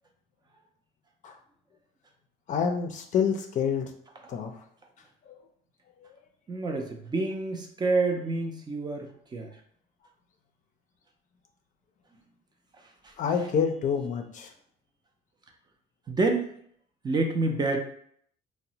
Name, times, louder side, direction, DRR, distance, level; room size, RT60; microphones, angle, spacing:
voice 1, 2.5-3.9 4.3-4.5 5.3-5.4 13.2-14.5, left 7 dB, 50° left, 4 dB, 0.4 m, -27 dB
voice 2, 6.5-9.5 13.0-13.1 16.1-16.5 17.0-17.8, right 3 dB, 25° right, 3 dB, 0.4 m, -28 dB
2.8 x 2.0 x 2.7 m, 0.64 s
cardioid pair, 110°, 17 cm